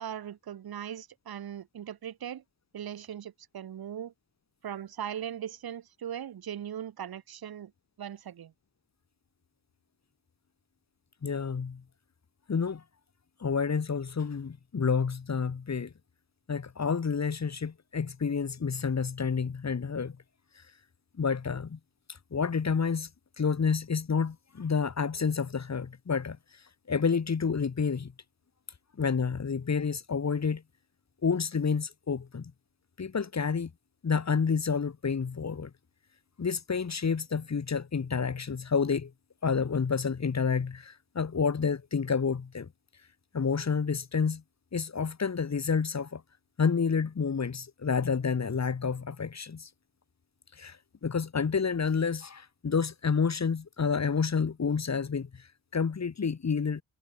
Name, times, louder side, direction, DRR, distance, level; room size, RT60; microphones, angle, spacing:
voice 1, 0.0-2.4 2.7-4.1 4.6-7.7 8.0-8.5, right 9 dB, 75° right, 1.7 m, -39 dB
voice 2, 11.2-11.8 12.5-12.8 13.4-15.9 16.5-20.2 21.2-21.8 22.3-23.1 23.4-26.4 26.9-28.1 29.0-30.6 31.2-32.5 33.0-33.7 34.0-35.7 36.4-39.1 39.4-42.7 43.3-44.4 44.7-46.2 46.6-49.7 50.6-50.8 51.0-55.4 55.7-56.8, left 5 dB, 45° left, 2.0 m, -29 dB
supercardioid pair, 50°, 37 cm